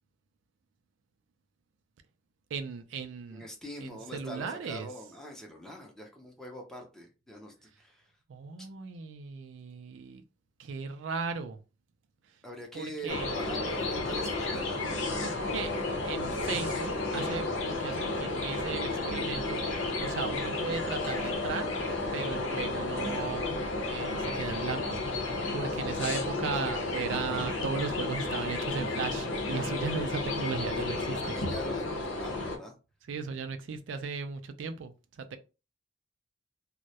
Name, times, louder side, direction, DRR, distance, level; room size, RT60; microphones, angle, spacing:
voice 1, 2.5-3.4 3.8-4.9 8.3-10.2 10.6-11.6 12.7-13.3 15.2-15.7 16.0-19.6 20.0-21.8 22.1-23.5 23.9-31.2 33.1-35.4, right 5 dB, 75° right, 0.4 m, -36 dB
voice 2, 3.3-8.1 8.6-8.7 12.4-15.1 30.8-32.7, equal, 5° left, 0.5 m, -44 dB
sound 1, 13.1-32.6, left 2 dB, 80° left, 0.6 m, -32 dB
2.2 x 2.0 x 2.7 m
head